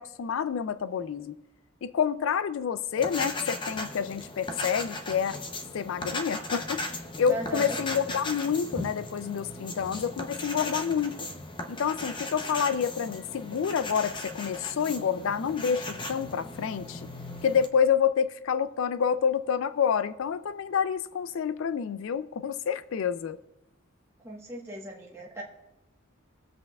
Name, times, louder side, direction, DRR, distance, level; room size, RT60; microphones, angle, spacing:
voice 1, 0.0-1.3 1.8-5.4 5.7-6.8 7.2-11.2 11.7-17.1 17.4-23.4, left 7 dB, 70° left, 0.4 m, -28 dB
sound 1, 3.0-17.7, left 2 dB, 25° left, 0.7 m, -37 dB
voice 2, 7.3-7.8 24.2-25.4, right 1 dB, 15° right, 1.2 m, -37 dB
21.0 x 7.7 x 2.3 m
head